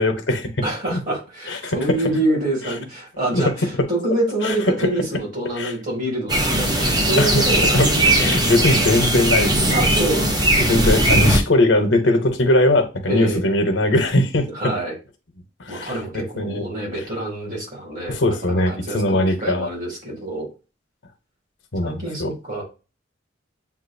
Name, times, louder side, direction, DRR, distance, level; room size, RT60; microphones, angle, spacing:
voice 1, 0.0-0.5 0.9-1.0 1.5-1.9 3.3-3.4 4.4-4.9 5.6-5.7 6.8-7.5 7.7-9.8 10.6-14.5 15.6-16.6 18.1-19.7 21.7-22.3, left 1 dB, 75° left, 7 dB, 1.0 m, -20 dB
voice 2, 0.6-8.3 9.7-10.7 13.1-13.4 14.5-14.9 15.7-20.5 21.8-22.6, right 1 dB, 45° right, -1 dB, 2.6 m, -26 dB
sound 1, 6.3-11.4, right 1 dB, 20° right, 0.8 m, -18 dB
7.3 x 2.7 x 2.7 m, 0.31 s
head